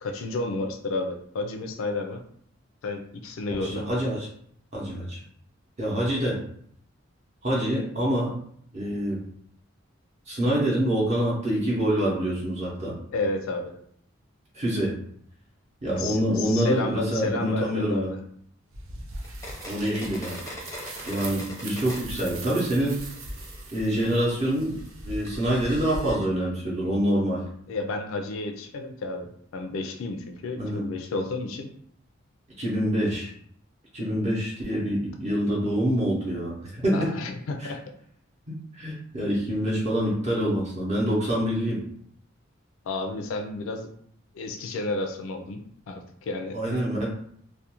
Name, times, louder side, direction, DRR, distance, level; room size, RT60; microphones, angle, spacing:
voice 1, 0.0-2.2 2.8-3.8 13.1-13.7 15.9-18.2 27.7-31.7 36.9-37.8 42.9-43.9 44.3-45.6 45.9-46.6, left 2 dB, 75° left, 4 dB, 0.3 m, -31 dB
voice 2, 3.6-4.3 4.7-5.2 5.8-6.4 7.4-8.3 8.7-9.2 10.3-12.9 14.5-15.0 15.8-18.1 19.7-20.4 21.1-23.0 23.7-24.7 25.0-27.4 30.6-30.8 32.6-33.3 33.9-37.1 37.6-37.7 38.5-41.8 46.5-47.1, equal, 35° right, -5 dB, 0.6 m, -26 dB
sound 1, 18.7-26.1, right 2 dB, 75° right, 0.5 m, -40 dB
sound 2, 19.2-22.2 22.5-26.3, left 1 dB, 15° left, 0.5 m, -43 dB
2.4 x 2.2 x 2.8 m, 0.64 s
head